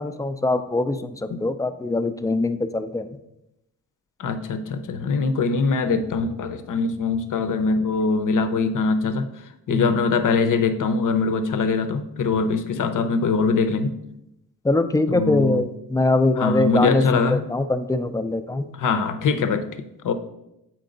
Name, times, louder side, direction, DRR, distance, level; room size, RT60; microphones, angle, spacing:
voice 1, 0.0-3.1 9.7-9.9 14.6-18.7, left 2 dB, 10° left, 9 dB, 0.4 m, -23 dB
voice 2, 4.2-9.3 9.7-13.9 15.1-15.6 16.4-17.4 18.8-20.1, left 4 dB, 50° left, 10 dB, 0.7 m, -22 dB
7.5 x 4.5 x 3.9 m, 0.87 s
cardioid pair, 70°, 39 cm